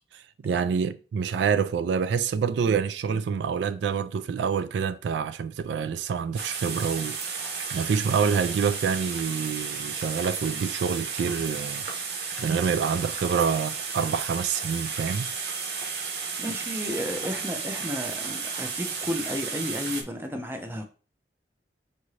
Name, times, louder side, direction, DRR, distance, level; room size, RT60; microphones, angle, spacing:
voice 1, 0.1-7.4 7.7-12.1 12.4-15.3, right 6 dB, 80° right, 0.3 m, -27 dB
sound 1, 6.4-20.0, right 5 dB, 60° right, 0.7 m, -33 dB
voice 2, 16.4-20.9, equal, 15° right, 0.6 m, -32 dB
5.6 x 2.6 x 3.1 m
head